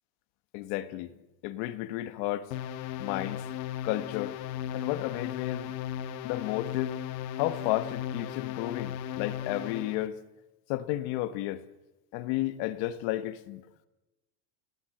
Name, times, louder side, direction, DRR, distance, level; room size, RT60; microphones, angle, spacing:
voice 1, 0.5-1.1 1.4-2.5 3.0-3.4 3.8-4.3 4.7-5.7 6.2-7.0 7.4-10.2 10.7-11.6 12.1-13.6, left 15 dB, 55° left, 1.4 m, -32 dB
sound 1, 2.5-10.1, left 10 dB, 80° left, 1.8 m, -36 dB
29.5 x 17.5 x 7.9 m
cardioid pair, 170°, 49 cm